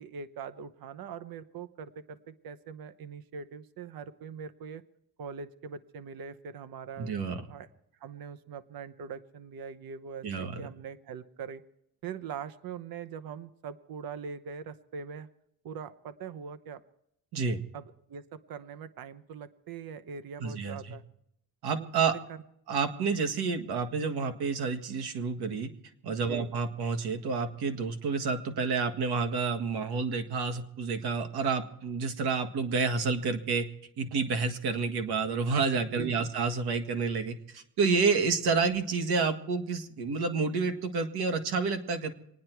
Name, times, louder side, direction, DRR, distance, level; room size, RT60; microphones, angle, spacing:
voice 1, 0.0-4.8 5.2-7.1 7.5-7.7 8.0-11.6 12.0-15.3 15.6-16.8 17.7-21.0 21.7-21.9 22.3-22.4 26.3-26.5 35.9-36.3, right 6 dB, 65° right, 12 dB, 1.0 m, -42 dB
voice 2, 7.0-7.4 10.2-10.7 17.3-17.6 20.4-21.0 21.6-22.1 22.7-25.7 26.0-33.7 34.0-42.1, right 4 dB, 85° right, 7 dB, 1.8 m, -29 dB
26.5 x 9.6 x 4.6 m, 0.77 s
cardioid pair, 145°, 38 cm